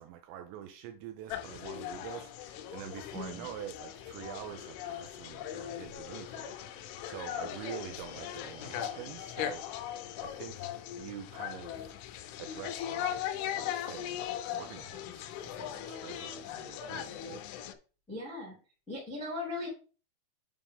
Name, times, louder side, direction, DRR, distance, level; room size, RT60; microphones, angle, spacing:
voice 1, 0.0-11.8 12.4-13.2 13.6-15.3 15.5-17.4, right 10 dB, 80° right, 2.7 m, -46 dB
sound 1, 1.3-17.7, left 11 dB, 80° left, 3.0 m, -39 dB
voice 2, 3.1-3.5 18.1-18.6 18.9-19.7, left 2 dB, 5° left, 1.0 m, -38 dB
7.4 x 5.0 x 3.7 m
omnidirectional pair, 5.6 m